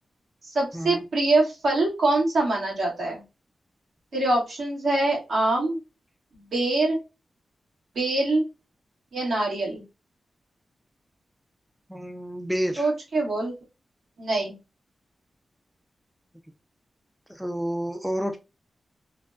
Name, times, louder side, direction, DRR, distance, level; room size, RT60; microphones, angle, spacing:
voice 1, 0.5-3.2 4.1-5.8 6.3-7.0 7.9-8.4 9.1-9.8 12.8-13.5 14.2-14.5, right 2 dB, 70° right, 1.6 m, -24 dB
voice 2, 11.9-12.9 17.3-18.4, equal, ahead, 0.3 m, -29 dB
3.2 x 2.2 x 2.4 m
wide cardioid pair, 130°, 0 cm